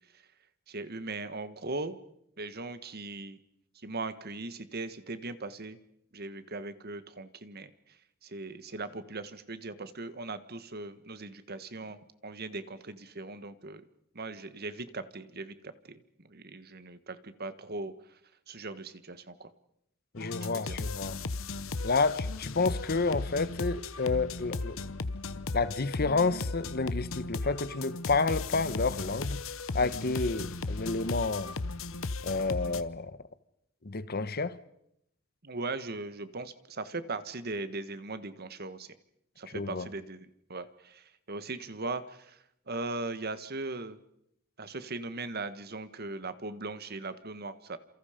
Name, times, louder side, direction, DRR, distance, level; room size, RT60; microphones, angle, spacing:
voice 1, 0.7-2.0 2.4-3.4 3.7-5.8 6.1-7.7 8.2-13.8 14.1-17.9 18.5-19.5 20.4-20.8 35.4-38.9 39.4-44.0 44.6-47.8, right 3 dB, 50° right, 1.5 m, -39 dB
voice 2, 20.1-21.2 21.8-24.8 25.5-29.4 29.7-31.5 32.2-33.2 33.8-34.6 39.5-39.9, left 3 dB, 50° left, 1.1 m, -30 dB
sound 1, 20.2-32.8, left 3 dB, 70° left, 1.0 m, -36 dB
29.5 x 27.5 x 5.1 m
head